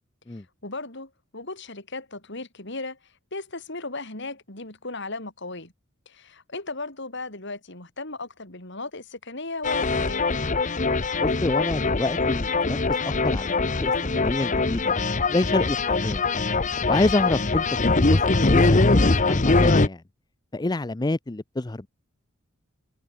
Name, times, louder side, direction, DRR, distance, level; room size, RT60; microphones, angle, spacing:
voice 1, 0.3-5.7 6.1-10.3, left 3 dB, 60° left, 6.0 m, -36 dB
sound 1, 9.6-19.9, left 3 dB, 35° left, 1.0 m, -22 dB
voice 2, 11.2-15.0 15.3-16.2 16.9-20.0 20.5-21.9, left 2 dB, 20° left, 0.5 m, -28 dB
head